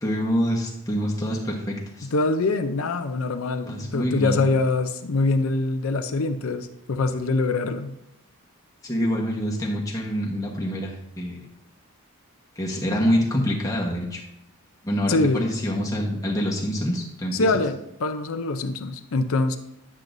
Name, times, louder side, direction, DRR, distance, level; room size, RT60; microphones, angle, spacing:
voice 1, 0.0-2.1 3.7-4.4 8.8-11.4 12.6-14.2 14.8-17.5, equal, 15° left, -2 dB, 1.2 m, -26 dB
voice 2, 2.1-7.9 15.1-15.5 17.3-19.6, left 3 dB, 75° left, 8 dB, 0.5 m, -24 dB
10.5 x 7.5 x 2.6 m, 0.83 s
head